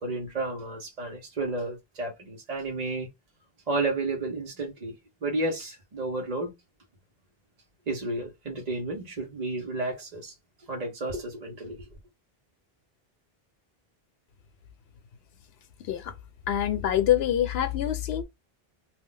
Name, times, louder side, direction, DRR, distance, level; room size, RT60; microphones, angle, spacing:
voice 1, 0.0-3.1 3.7-4.9 5.2-6.5 7.9-10.3 10.7-11.8, right 2 dB, 45° right, 0.8 m, -32 dB
voice 2, 15.8-16.1 16.5-18.2, left 11 dB, 80° left, 0.8 m, -25 dB
2.3 x 2.1 x 3.7 m
omnidirectional pair, 1.0 m